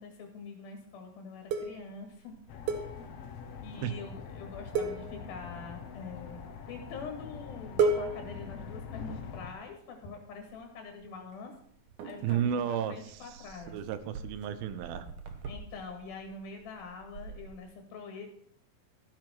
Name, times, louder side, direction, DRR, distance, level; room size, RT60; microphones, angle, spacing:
voice 1, 0.0-2.4 3.6-11.6 12.0-13.8 15.5-18.2, left 4 dB, 85° left, 4 dB, 3.8 m, -45 dB
sound 1, 1.5-3.5 3.8-4.0 4.3-4.5 4.7-5.8 6.6-7.1 7.3-7.4 7.8-9.8 10.4-11.1 11.3-17.6, right 4 dB, 65° right, 2.6 m, -36 dB
sound 2, 2.5-9.5, left 6 dB, 65° left, 1.5 m, -44 dB
voice 2, 12.2-13.5 13.7-15.1, right 9 dB, 85° right, 12 dB, 2.7 m, -33 dB
13.5 x 7.9 x 6.1 m, 0.63 s
omnidirectional pair, 4.2 m